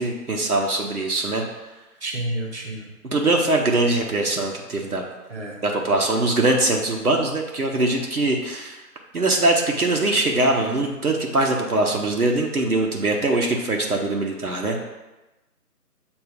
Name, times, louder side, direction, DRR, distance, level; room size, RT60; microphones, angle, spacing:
voice 1, 0.0-1.4 3.1-5.0 5.6-8.8 9.1-14.9, right 2 dB, 65° right, 0 dB, 1.0 m, -22 dB
voice 2, 2.0-2.9 5.3-5.6, right 1 dB, 45° right, -1 dB, 1.1 m, -30 dB
7.2 x 2.7 x 5.0 m, 1.1 s
figure-of-eight pair, 170°, 47 cm